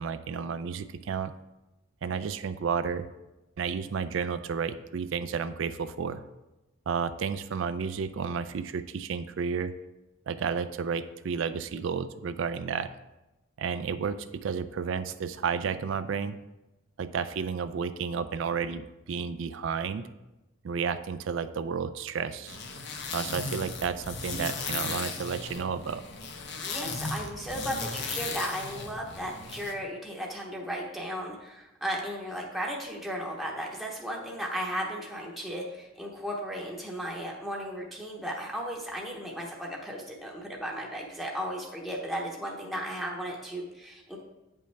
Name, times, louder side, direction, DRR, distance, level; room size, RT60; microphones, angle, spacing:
voice 1, 0.0-1.3 2.0-3.1 3.6-6.2 6.9-9.8 10.3-12.9 13.6-16.4 17.0-20.1 20.6-22.6 23.1-26.0, right 6 dB, 65° right, 12 dB, 0.4 m, -32 dB
sound 1, 22.5-29.7, left 4 dB, 55° left, 0.9 m, -36 dB
voice 2, 26.6-44.2, equal, ahead, -3 dB, 0.8 m, -35 dB
8.6 x 5.4 x 3.4 m, 1.0 s
head